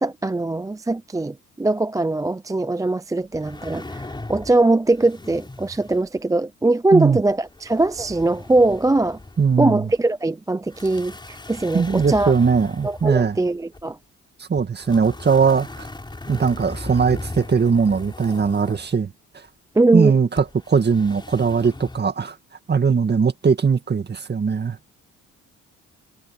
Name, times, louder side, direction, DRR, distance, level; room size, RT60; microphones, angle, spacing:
voice 1, 0.0-9.2 9.6-12.3 12.8-14.0 19.8-20.1, right 2 dB, 10° right, 0.5 m, -21 dB
sound 1, 3.3-4.6 4.9-6.2 7.3-9.6 9.9-10.0 10.7-13.8 14.6-18.9 20.4-22.0, left 2 dB, 15° left, 4.8 m, -38 dB
voice 2, 9.4-9.9 11.7-13.4 14.5-15.9 16.3-19.1 19.9-22.3 22.7-24.8, right 5 dB, 35° right, 2.0 m, -20 dB
cardioid pair, 90°, 30 cm